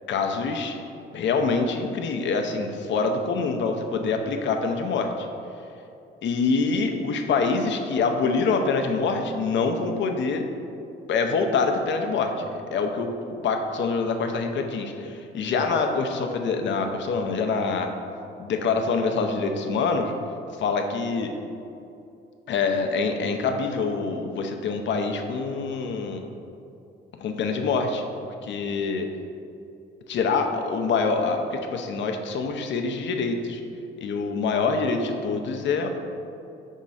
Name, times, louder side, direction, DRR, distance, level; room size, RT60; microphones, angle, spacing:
voice 1, 0.1-0.8 1.1-5.3 6.2-10.5 11.1-13.1 13.4-17.9 18.4-20.1 20.6-21.3 22.5-26.2 27.2-28.0 28.4-29.1 30.1-33.6 34.0-35.9, left 4 dB, 65° left, 5 dB, 0.7 m, -25 dB
5.2 x 3.6 x 5.6 m, 2.6 s
cardioid pair, 90°, 20 cm